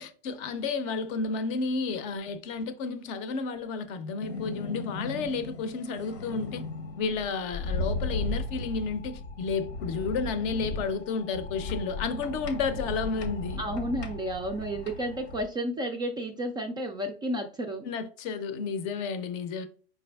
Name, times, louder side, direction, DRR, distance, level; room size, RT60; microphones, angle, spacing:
voice 1, 0.0-6.6 7.0-13.6 17.8-19.7, left 4 dB, 40° left, 0.6 m, -31 dB
sound 1, 4.2-15.4, left 2 dB, 85° left, 1.0 m, -36 dB
voice 2, 13.6-17.9, right 1 dB, 15° right, 0.4 m, -32 dB
4.8 x 3.4 x 2.3 m
hypercardioid pair, 100°, 32 cm